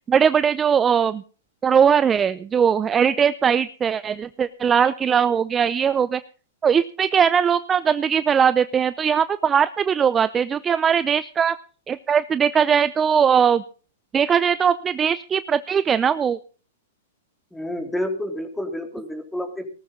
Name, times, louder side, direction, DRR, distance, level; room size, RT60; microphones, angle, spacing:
voice 1, 0.1-1.2 1.6-6.2 6.6-11.6 11.9-13.6 14.1-16.4, right 7 dB, 20° right, 15 dB, 0.6 m, -20 dB
voice 2, 17.5-19.7, left 1 dB, 5° left, 5 dB, 3.4 m, -29 dB
18.5 x 13.0 x 3.8 m, 0.39 s
hypercardioid pair, 115°, 0 cm